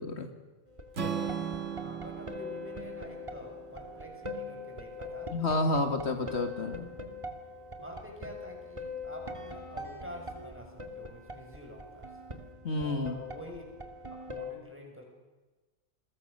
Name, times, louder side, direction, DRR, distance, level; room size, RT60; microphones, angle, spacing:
sound 1, 0.7-14.5, left 2 dB, 25° right, 2.3 m, -43 dB
Strum, 0.9-5.1, right 7 dB, 85° right, 1.9 m, -38 dB
voice 1, 1.7-5.9 7.8-12.1 12.8-13.6 14.1-15.0, equal, 10° right, 1 dB, 6.5 m, -47 dB
voice 2, 5.3-6.9 12.6-13.2, left 2 dB, 65° left, 6 dB, 2.0 m, -30 dB
28.5 x 22.0 x 6.6 m, 1.2 s
omnidirectional pair, 1.2 m